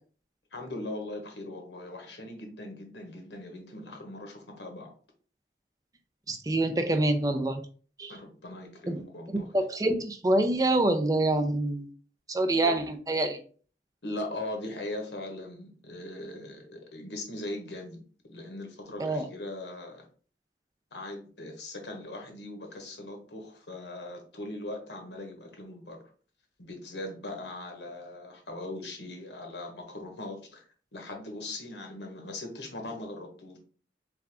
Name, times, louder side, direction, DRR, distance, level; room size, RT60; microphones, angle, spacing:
voice 1, 0.5-4.9 8.1-9.5 12.6-12.8 14.0-20.1 20.9-26.0 26.6-33.6, left 1 dB, 90° left, 3 dB, 1.2 m, -40 dB
voice 2, 6.3-7.6 8.0-8.1 8.9-9.0 9.5-11.9 12.3-13.4 19.0-19.2, right 2 dB, 20° right, 7 dB, 0.4 m, -26 dB
3.6 x 3.4 x 3.4 m, 0.42 s
head